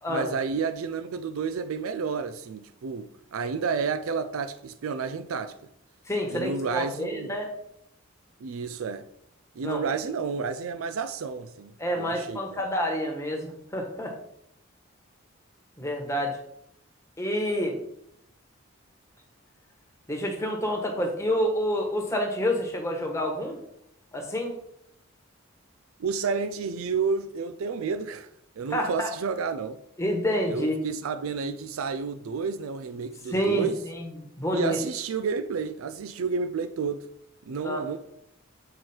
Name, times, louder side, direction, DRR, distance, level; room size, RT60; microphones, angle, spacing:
voice 1, 0.1-5.5 6.3-7.3 8.4-9.0 9.6-11.7 12.0-12.6 26.0-28.3 28.6-29.8 30.5-33.8 34.5-37.0 37.4-38.0, right 5 dB, 80° right, 0.4 m, -30 dB
voice 2, 6.1-7.5 9.6-9.9 11.8-14.2 15.8-16.4 17.2-17.8 20.1-23.6 24.1-24.5 28.7-29.1 30.0-30.8 33.3-34.1 34.4-34.8 37.6-37.9, equal, 15° left, 1.3 m, -28 dB
7.9 x 4.6 x 4.4 m
head